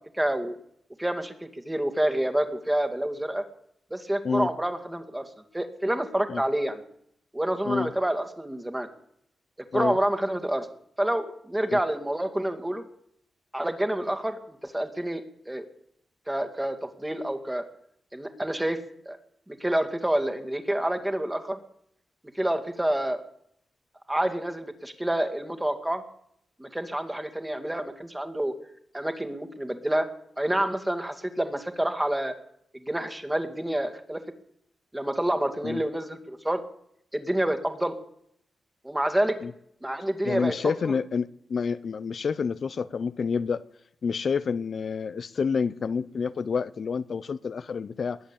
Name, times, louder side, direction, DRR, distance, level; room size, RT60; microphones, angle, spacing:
voice 1, 0.2-0.5 1.0-3.4 3.9-5.3 5.5-6.8 7.3-8.9 9.7-10.7 11.0-12.8 13.5-15.7 16.3-17.6 18.1-18.8 19.1-19.2 19.5-21.6 22.4-23.2 24.1-26.0 26.6-28.5 28.9-30.1 30.4-32.3 32.7-34.2 34.9-36.6 37.1-37.9 38.8-39.4 39.8-40.5 40.8-41.0, right 1 dB, 10° right, 6 dB, 2.2 m, -28 dB
voice 2, 40.2-43.6 44.0-48.2, left 5 dB, 60° left, 14 dB, 0.7 m, -28 dB
20.5 x 8.1 x 8.7 m, 0.71 s
cardioid pair, 85°, 0 cm